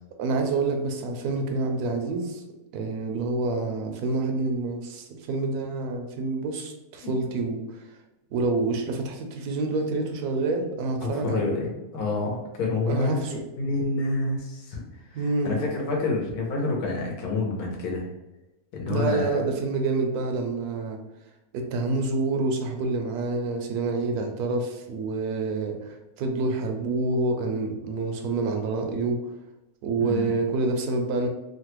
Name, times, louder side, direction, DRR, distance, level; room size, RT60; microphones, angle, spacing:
voice 1, 0.2-2.4 2.7-7.8 8.3-11.5 12.9-13.4 15.1-15.6 18.9-21.0 21.5-29.2 29.8-31.3, right 3 dB, 80° right, 3 dB, 1.1 m, -27 dB
voice 2, 11.0-13.2 13.5-14.8 15.1-18.1 18.7-19.4 30.0-30.3, left 3 dB, 80° left, -1 dB, 1.2 m, -28 dB
3.1 x 2.2 x 2.9 m, 1.0 s
omnidirectional pair, 1.6 m